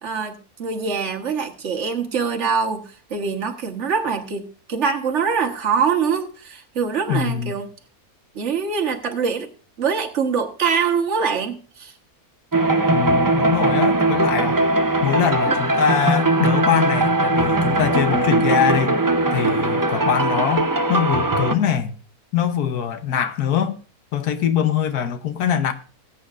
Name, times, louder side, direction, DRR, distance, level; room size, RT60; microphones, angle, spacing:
voice 1, 0.0-7.7 8.3-9.5 9.8-11.9 15.5-15.6, right 6 dB, 50° right, 1.5 m, -24 dB
voice 2, 7.1-7.5 12.9-14.6 15.0-19.0 19.3-21.9 22.3-23.8 24.1-25.7, left 8 dB, 85° left, 1.4 m, -22 dB
sound 1, 12.5-21.5, right 2 dB, 30° right, 0.3 m, -20 dB
19.0 x 8.5 x 2.5 m
omnidirectional pair, 1.6 m